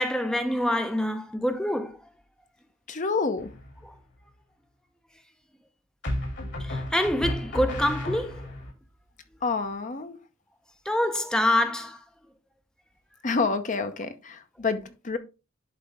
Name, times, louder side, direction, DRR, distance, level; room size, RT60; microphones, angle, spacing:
voice 1, 0.0-2.0 3.8-3.9 6.6-8.5 10.9-12.0, left 1 dB, 5° left, 0.6 m, -26 dB
voice 2, 2.9-3.5 9.4-10.2 13.2-15.2, left 4 dB, 40° left, 0.8 m, -28 dB
sound 1, 3.4-3.9 6.0-8.7, left 1 dB, 65° left, 3.3 m, -33 dB
11.0 x 4.2 x 3.5 m
head